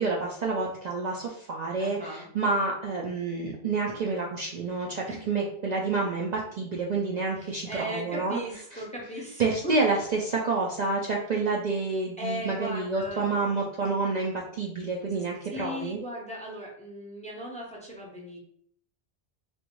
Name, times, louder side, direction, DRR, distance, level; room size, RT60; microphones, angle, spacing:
voice 1, 0.0-8.4 9.4-16.0, right 3 dB, 55° right, -2 dB, 0.5 m, -28 dB
voice 2, 1.8-2.3 5.1-5.4 7.4-9.7 12.2-13.7 15.5-18.4, left 1 dB, 10° left, -2 dB, 0.6 m, -38 dB
3.4 x 2.5 x 3.0 m, 0.63 s
omnidirectional pair, 1.1 m